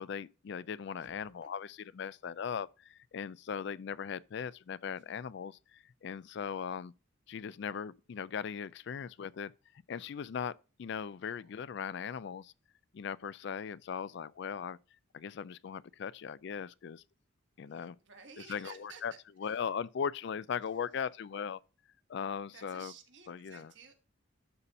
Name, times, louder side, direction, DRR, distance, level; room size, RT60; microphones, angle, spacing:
voice 1, 0.0-6.9 7.3-9.5 9.9-12.5 12.9-14.8 15.1-17.0 17.6-18.0 18.5-19.1 19.4-21.6 22.1-22.9 23.3-23.7, left 7 dB, 55° left, 0.3 m, -39 dB
voice 2, 1.0-1.3 11.0-11.7 17.6-19.0 19.4-19.7 20.6-21.2 22.5-23.9, right 6 dB, 60° right, 1.5 m, -55 dB
12.5 x 4.2 x 4.1 m
head